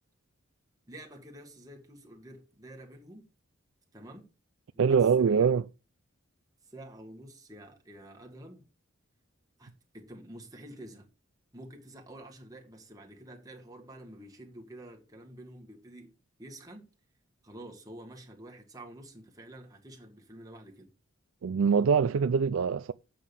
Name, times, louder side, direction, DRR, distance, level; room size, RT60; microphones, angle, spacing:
voice 1, 0.9-3.3 3.9-4.3 4.7-5.3 6.6-8.6 9.6-11.1 11.5-16.1 16.4-16.9 17.4-20.9, right 1 dB, 20° right, 1.8 m, -48 dB
voice 2, 4.8-5.6 21.4-22.9, right 6 dB, 85° right, 0.4 m, -24 dB
7.7 x 6.2 x 6.9 m
head